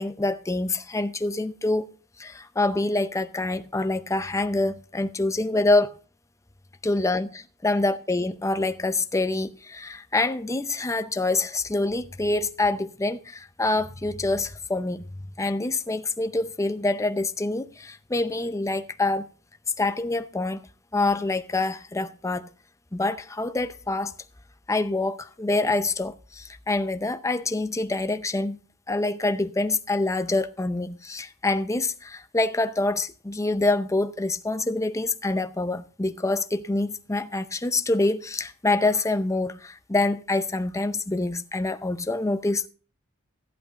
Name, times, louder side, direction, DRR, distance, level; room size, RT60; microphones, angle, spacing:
voice 1, 0.0-5.9 6.8-15.1 15.4-19.3 19.8-20.6 20.9-22.5 22.9-24.1 24.7-28.6 28.9-42.7, left 2 dB, 15° left, 0.6 m, -26 dB
14.5 x 8.0 x 3.7 m
head